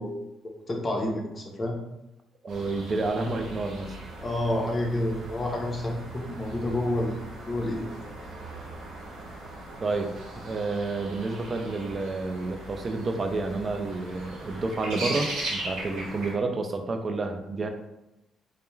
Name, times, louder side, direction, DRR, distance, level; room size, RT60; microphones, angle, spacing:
voice 1, 0.0-1.8 4.2-7.2 7.5-7.9, left 1 dB, 30° left, 1 dB, 0.6 m, -29 dB
voice 2, 2.4-4.0 9.8-17.7, right 3 dB, 40° right, 5 dB, 0.3 m, -30 dB
sound 1, 2.5-16.3, right 1 dB, 85° right, 0.8 m, -39 dB
2.2 x 2.2 x 3.1 m, 0.93 s
cardioid pair, 90°, 0 cm